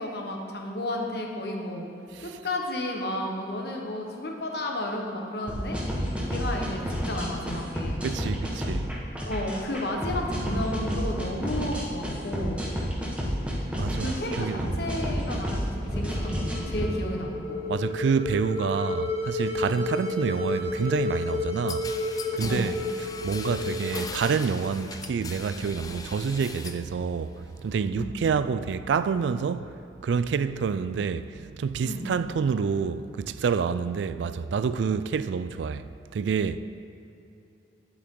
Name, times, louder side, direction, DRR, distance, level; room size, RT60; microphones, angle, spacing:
voice 1, 0.0-1.9 2.2-5.8 6.3-8.0 9.2-12.6 14.0-17.6 19.6-19.9 22.4-22.8 28.0-28.1 31.8-32.1, left 1 dB, 60° left, 1.2 m, -32 dB
sound 1, 5.5-16.9, equal, 5° right, 1.2 m, -30 dB
voice 2, 8.0-8.9 13.8-14.8 17.7-21.9 22.3-29.7 30.0-36.6, right 6 dB, 75° right, 0.3 m, -28 dB
sound 2, 15.7-24.9, left 2 dB, 35° left, 1.2 m, -32 dB
sound 3, 21.7-26.9 27.2-27.9, left 4 dB, 20° left, 0.4 m, -40 dB
10.5 x 7.8 x 3.8 m
head